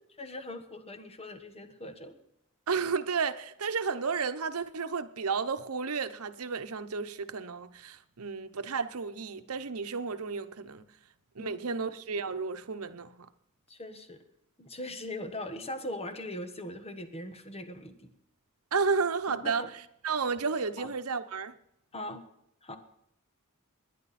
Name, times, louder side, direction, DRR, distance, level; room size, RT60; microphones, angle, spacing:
voice 1, 0.2-2.2 11.4-11.8 13.7-14.2 14.6-18.1 19.3-19.7 20.8-20.9 21.9-22.2 22.6-22.8, left 1 dB, 30° left, 1.3 m, -40 dB
voice 2, 2.7-10.8 11.4-13.3 18.7-19.6 20.0-21.5, right 5 dB, 85° right, 0.9 m, -32 dB
20.0 x 10.5 x 4.2 m
head